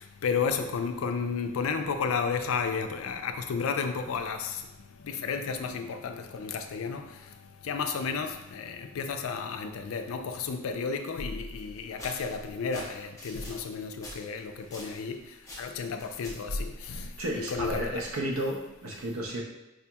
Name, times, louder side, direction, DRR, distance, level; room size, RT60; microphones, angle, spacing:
voice 1, 0.0-4.7 5.0-7.2 7.6-15.2 15.6-18.0, left 5 dB, 85° left, 7 dB, 0.4 m, -32 dB
sound 1, 11.5-15.1 15.4-16.5, left 1 dB, 15° left, 1.0 m, -45 dB
voice 2, 17.2-19.4, right 1 dB, 85° right, -1 dB, 0.6 m, -32 dB
4.8 x 2.8 x 2.3 m, 0.97 s
head